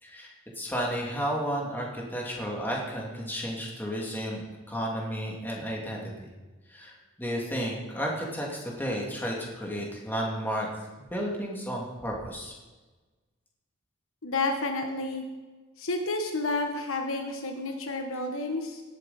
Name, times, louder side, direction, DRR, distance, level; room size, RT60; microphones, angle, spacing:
voice 1, 0.0-4.4 4.7-6.3 6.7-6.9 7.2-10.7 11.0-12.5, equal, 10° left, -3 dB, 2.4 m, -32 dB
voice 2, 14.2-15.2 15.8-18.8, left 2 dB, 65° left, 4 dB, 1.3 m, -30 dB
18.0 x 7.8 x 4.2 m, 1.2 s
head